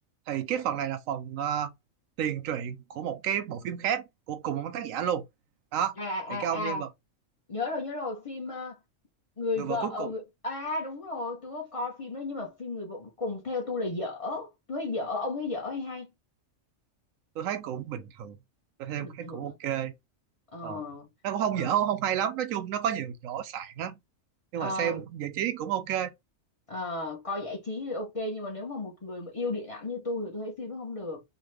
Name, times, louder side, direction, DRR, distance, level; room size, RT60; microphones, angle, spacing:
voice 1, 0.3-1.7 2.2-5.3 5.7-6.0 6.3-6.9 9.6-10.1 17.4-18.4 18.8-19.9 20.6-20.8 21.2-24.0 24.5-26.1, right 9 dB, 90° right, 1.0 m, -31 dB
voice 2, 6.0-6.8 7.5-8.8 9.4-16.1 19.0-19.5 20.5-21.1 21.6-21.7 24.6-25.0 26.7-31.2, left 2 dB, 30° left, 0.8 m, -34 dB
2.9 x 2.4 x 3.1 m
omnidirectional pair, 1.4 m